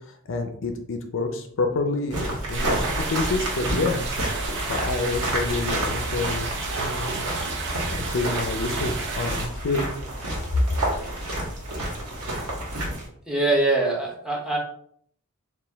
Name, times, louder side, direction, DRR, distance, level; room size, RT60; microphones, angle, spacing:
voice 1, 0.3-4.1 4.7-6.5 6.8-7.3 7.9-9.9, left 3 dB, 60° left, 5 dB, 0.5 m, -28 dB
sound 1, 2.1-13.1, right 1 dB, 80° right, 1.3 m, -30 dB
sound 2, 2.5-9.5, right 3 dB, 55° right, 0.7 m, -32 dB
voice 2, 13.3-14.6, right 2 dB, 5° right, -1 dB, 0.8 m, -23 dB
4.3 x 2.4 x 3.4 m, 0.63 s
head